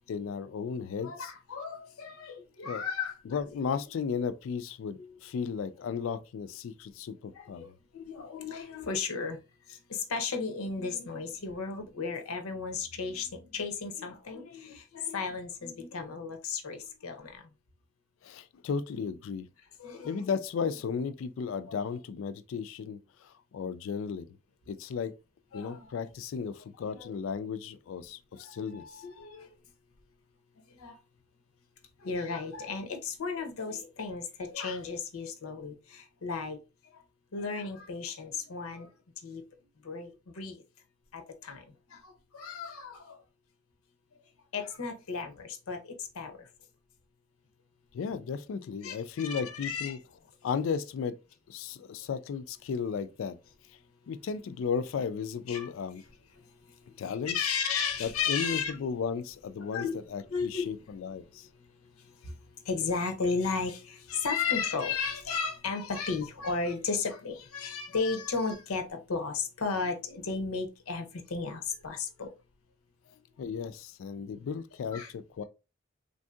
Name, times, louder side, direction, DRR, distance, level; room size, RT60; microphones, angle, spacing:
voice 1, 0.1-1.3 2.6-2.8 3.3-7.7 18.2-19.5 20.0-24.4 24.7-25.1 25.5-29.0 47.9-50.0 50.4-51.2 51.5-53.4 54.1-56.0 57.0-57.4 58.0-61.5 73.4-75.4, left 6 dB, 65° left, 0.3 m, -35 dB
voice 2, 1.0-3.4 5.0-5.2 7.3-9.4 9.7-17.4 19.8-20.2 25.5-25.9 26.8-27.1 28.4-29.5 30.7-31.0 32.0-36.6 36.9-37.0 37.3-38.9 39.2-39.4 39.8-40.6 41.1-41.6 41.9-43.2 44.5-46.4 48.8-50.0 55.5-55.7 57.1-58.7 59.6-59.9 60.3-60.7 62.0-62.3 62.6-72.3 74.9-75.1, left 5 dB, 90° left, 0.7 m, -34 dB
3.4 x 2.6 x 2.2 m
head